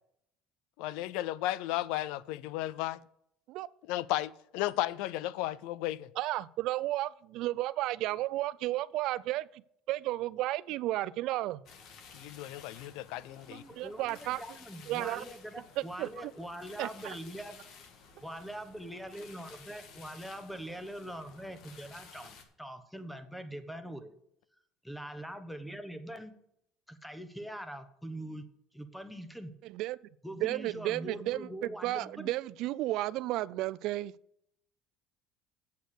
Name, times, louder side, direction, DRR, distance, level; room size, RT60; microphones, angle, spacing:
voice 1, 0.8-3.0 3.9-6.1 12.1-13.6, left 15 dB, 80° left, 0.4 m, -34 dB
voice 2, 6.2-9.6 9.9-11.6 13.5-14.4 14.9-15.2 16.0-16.3 16.8-17.1 29.6-30.0 30.4-34.1, right 16 dB, 65° right, 0.3 m, -33 dB
sound 1, 11.7-22.4, left 6 dB, 60° left, 1.7 m, -54 dB
voice 3, 13.2-17.6 18.2-24.1 24.8-26.3 26.9-28.5 28.7-29.5 30.2-32.3, right 1 dB, ahead, 1.1 m, -43 dB
8.2 x 8.0 x 6.6 m
cardioid pair, 125°, 0 cm